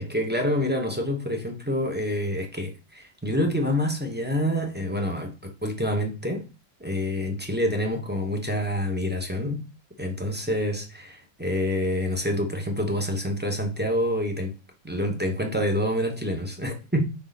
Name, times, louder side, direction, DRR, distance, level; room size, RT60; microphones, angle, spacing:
voice 1, 0.0-6.5 6.8-9.6 10.0-14.5 14.8-17.0, equal, 10° right, 0.7 m, -27 dB
5.9 x 5.1 x 4.1 m
omnidirectional pair, 2.1 m